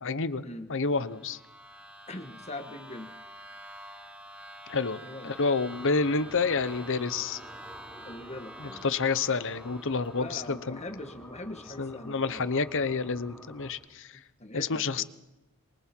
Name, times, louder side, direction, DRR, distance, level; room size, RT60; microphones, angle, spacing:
voice 1, 0.0-0.4 0.7-1.4 4.7-7.4 8.6-10.8 11.8-14.1 14.5-15.0, left 4 dB, 60° left, 14 dB, 1.0 m, -29 dB
sound 1, 0.9-10.5, equal, 5° right, 2.2 m, -48 dB
voice 2, 2.1-3.2 5.0-5.4 8.0-8.8 10.2-12.5 14.4-15.0, left 2 dB, 30° left, 7 dB, 1.7 m, -42 dB
sound 2, 5.7-13.7, equal, 10° left, 3.1 m, -49 dB
27.0 x 24.0 x 4.6 m, 1.0 s
head